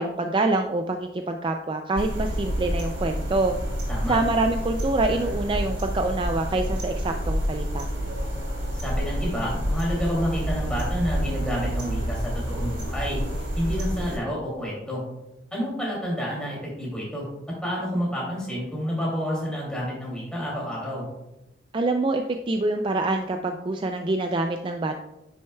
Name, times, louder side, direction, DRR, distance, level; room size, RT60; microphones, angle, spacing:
voice 1, 0.0-3.5 4.1-7.9 21.7-25.0, right 2 dB, 25° right, 5 dB, 0.3 m, -25 dB
sound 1, 1.9-14.2, equal, 80° right, 2.6 m, -29 dB
voice 2, 3.9-4.2 8.7-13.2 13.6-15.0 15.5-17.3 17.6-21.0, equal, 5° left, -5 dB, 2.5 m, -29 dB
9.8 x 6.3 x 2.3 m, 0.93 s
head